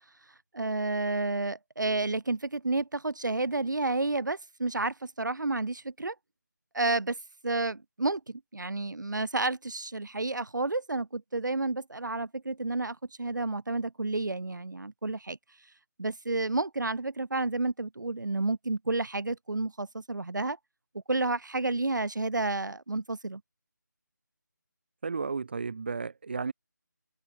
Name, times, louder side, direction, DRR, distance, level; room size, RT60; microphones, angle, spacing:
voice 1, 0.5-6.2 6.7-7.2 7.4-15.4 16.0-20.6 21.1-23.4, right 2 dB, 75° right, 7.3 m, -30 dB
voice 2, 25.0-26.5, right 4 dB, 35° right, 2.0 m, -33 dB
figure-of-eight pair, 175°, 10 cm